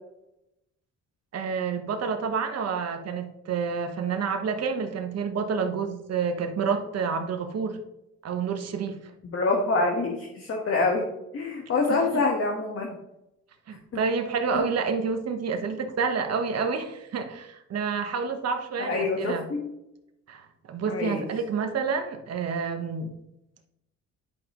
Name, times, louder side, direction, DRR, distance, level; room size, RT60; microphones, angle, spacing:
voice 1, 1.3-7.8 8.2-9.0 11.9-12.2 13.7-19.5 20.3-23.1, right 5 dB, 55° right, 5 dB, 1.2 m, -29 dB
voice 2, 9.2-11.0 11.3-12.9 14.5-14.6 18.8-19.7 20.9-21.2, left 3 dB, 50° left, 1 dB, 1.3 m, -26 dB
10.5 x 5.1 x 3.0 m, 0.88 s
cardioid pair, 90°, 30 cm